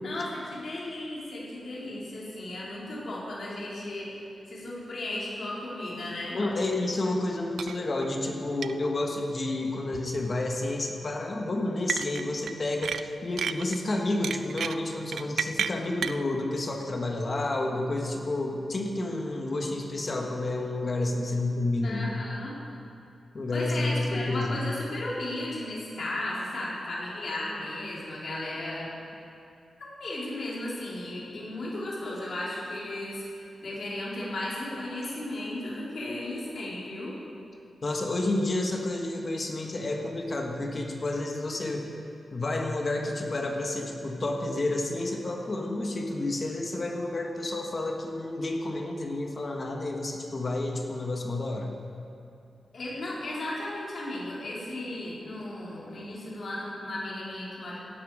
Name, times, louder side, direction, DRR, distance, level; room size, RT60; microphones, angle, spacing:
voice 1, 0.0-4.2 4.5-6.4 21.8-22.5 23.5-28.9 29.8-37.1 52.7-57.8, left 1 dB, 50° left, -6 dB, 4.0 m, -35 dB
voice 2, 6.3-22.2 23.3-24.6 37.8-41.9 42.3-51.7, left 2 dB, 35° left, 1 dB, 1.4 m, -30 dB
sound 1, 7.6-8.1 8.6-8.7 9.9-10.2 11.9-12.5 12.8-13.8 14.2-16.2, right 7 dB, 75° right, 0.4 m, -31 dB
16.5 x 12.0 x 4.9 m, 2.5 s
wide cardioid pair, 170°, 0 cm